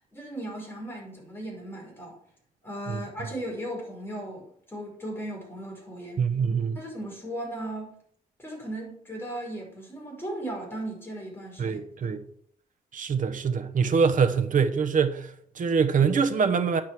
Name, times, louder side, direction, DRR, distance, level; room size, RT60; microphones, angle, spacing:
voice 1, 0.1-2.1 2.6-6.2 6.7-8.0 8.4-11.8, right 1 dB, 15° left, 5.1 m, -37 dB
voice 2, 6.2-6.8 11.6-12.2 12.9-16.8, right 6 dB, 55° right, 1.0 m, -24 dB
10.0 x 6.2 x 6.2 m
cardioid pair, 115°, 16 cm